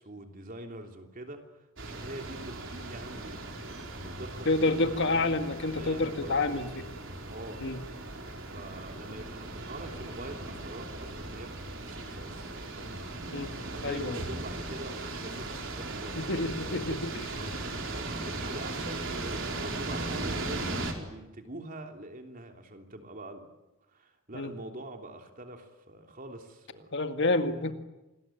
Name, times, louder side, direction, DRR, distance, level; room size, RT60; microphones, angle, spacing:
voice 1, 0.0-3.4 4.0-5.3 5.6-6.8 7.3-7.7 8.2-13.0 13.7-16.2 16.6-17.0 17.4-17.6 17.9-23.5 23.9-26.9 27.6-27.7, right 1 dB, 40° right, 4 dB, 3.2 m, -44 dB
sound 1, 1.8-20.9, right 2 dB, 65° right, 4.3 m, -38 dB
voice 2, 4.5-6.9 7.6-7.8 13.3-13.5 13.8-14.2 16.2-17.3 24.3-24.5 26.9-27.7, left 2 dB, 60° left, 7 dB, 2.0 m, -28 dB
27.0 x 20.5 x 9.2 m, 0.99 s
head